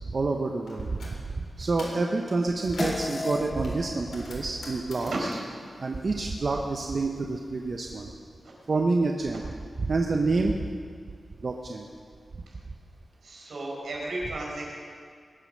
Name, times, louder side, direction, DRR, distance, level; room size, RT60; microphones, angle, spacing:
voice 1, 0.1-5.3 5.8-8.1 8.7-9.5 9.8-10.7 11.4-11.9, right 3 dB, 45° right, 2 dB, 0.9 m, -28 dB
sound 1, 0.7-1.2 1.6-2.1 2.4-3.1 3.6-6.6 6.8-8.0, left 2 dB, 75° left, 3.7 m, -45 dB
sound 2, 2.8-7.5, left 2 dB, 20° left, 0.3 m, -38 dB
voice 2, 13.2-14.7, right 2 dB, 80° right, -3 dB, 4.6 m, -34 dB
21.0 x 8.8 x 6.5 m, 2.2 s
wide cardioid pair, 135°, 0 cm